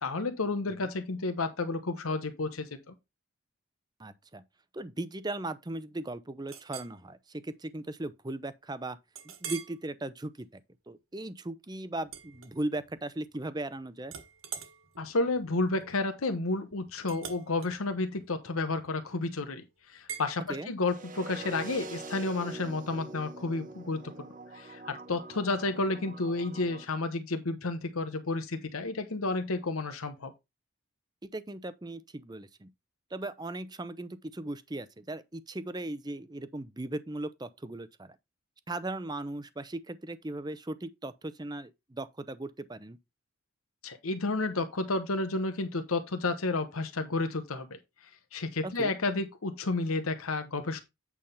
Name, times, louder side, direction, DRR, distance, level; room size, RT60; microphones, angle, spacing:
voice 1, 0.0-2.9 15.0-24.0 24.5-30.3 43.8-47.8 48.3-50.8, left 3 dB, 85° left, 1.0 m, -31 dB
voice 2, 4.0-4.4 4.7-9.0 9.2-14.1 20.5-20.7 31.2-32.7 33.1-38.2 38.7-43.0 48.6-49.0, right 2 dB, 20° right, 0.6 m, -38 dB
Chink clink, 6.5-7.0 7.5-7.7 8.1-8.2 9.1-9.8 10.3-10.6 12.0-13.0 13.3-13.7 14.0-19.2 20.1-20.3, right 7 dB, 80° right, 1.7 m, -45 dB
sound 1, 20.9-26.9, right 3 dB, 40° right, 1.1 m, -44 dB
8.7 x 3.5 x 5.6 m
head